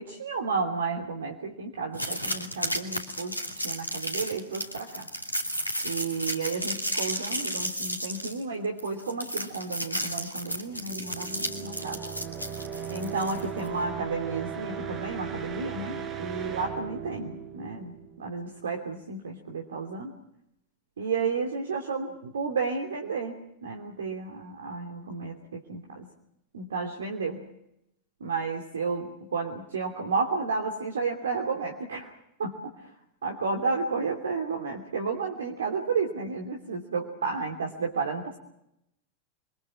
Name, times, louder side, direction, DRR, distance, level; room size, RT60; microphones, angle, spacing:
voice 1, 0.0-5.1 5.8-12.0 12.9-20.1 21.0-26.1 26.5-27.4 28.2-32.1 32.4-32.9 33.2-38.4, right 4 dB, 65° right, 2 dB, 2.9 m, -32 dB
sound 1, 1.9-13.7, equal, 85° left, 2.7 m, -33 dB
sound 2, 10.8-18.5, right 7 dB, 25° right, 6.9 m, -37 dB
29.5 x 23.0 x 6.2 m, 0.82 s
figure-of-eight pair, 90°, 0 cm